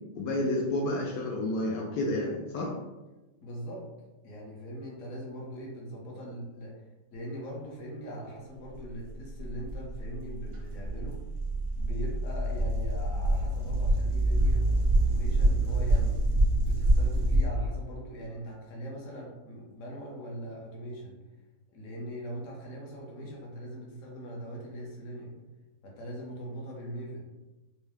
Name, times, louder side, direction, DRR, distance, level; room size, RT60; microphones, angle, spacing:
voice 1, 0.1-2.7, left 1 dB, 80° left, -2 dB, 1.3 m, -30 dB
voice 2, 3.4-3.9 4.2-6.8 7.1-11.2 11.8-16.2 16.5-21.2 21.7-25.3 25.8-27.3, equal, 55° left, -2 dB, 1.3 m, -41 dB
sound 1, 8.9-17.5, right 1 dB, 50° right, 0.3 m, -26 dB
4.6 x 2.2 x 3.4 m, 1.1 s
omnidirectional pair, 1.9 m